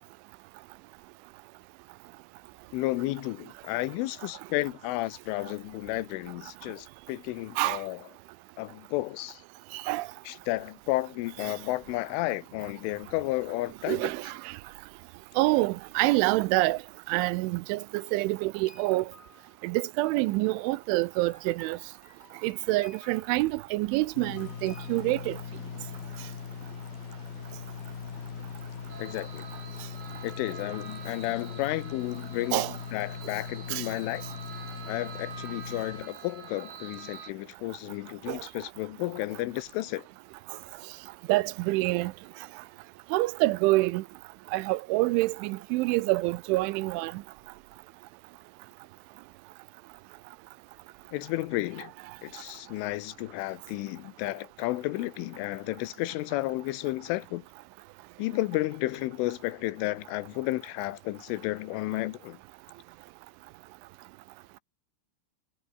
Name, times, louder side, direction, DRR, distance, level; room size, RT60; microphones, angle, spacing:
voice 1, 2.7-8.0 8.6-9.4 10.3-14.1 29.0-29.5 30.2-32.7 32.9-34.2 34.9-40.1 51.1-51.9 52.2-57.5 58.2-62.4, left 18 dB, 80° left, 3.5 m, -32 dB
voice 2, 9.7-10.1 13.9-14.5 15.4-16.8 17.1-19.1 19.6-21.8 22.4-25.4 32.5-32.7 33.7-33.8 38.3-38.4 41.3-42.1 43.1-44.0 44.5-47.1, right 20 dB, 80° right, 3.0 m, -26 dB
sound 1, 18.7-25.1, left 5 dB, 35° left, 4.6 m, -58 dB
sound 2, 24.1-36.1, left 7 dB, 50° left, 5.1 m, -40 dB
sound 3, 28.9-37.3, right 7 dB, 60° right, 5.8 m, -46 dB
omnidirectional pair, 5.7 m